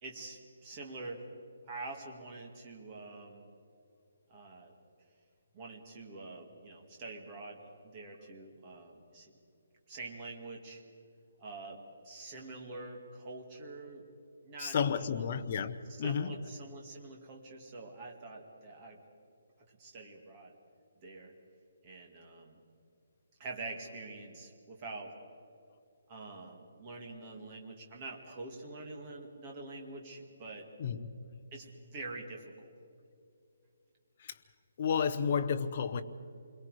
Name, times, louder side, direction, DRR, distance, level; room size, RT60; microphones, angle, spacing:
voice 1, 0.0-1.2 1.7-3.4 4.3-4.7 5.5-9.3 9.9-10.8 11.4-14.1 14.4-15.4 16.0-19.0 19.7-20.6 21.0-21.3 21.8-22.6 23.4-25.1 26.1-30.7 31.5-32.7, right 3 dB, 20° right, 2.0 m, -46 dB
voice 2, 14.6-16.4 30.8-31.1 34.2-34.4 34.8-36.0, left 6 dB, 25° left, 0.8 m, -32 dB
28.5 x 22.5 x 4.8 m
hypercardioid pair, 180°, 0 cm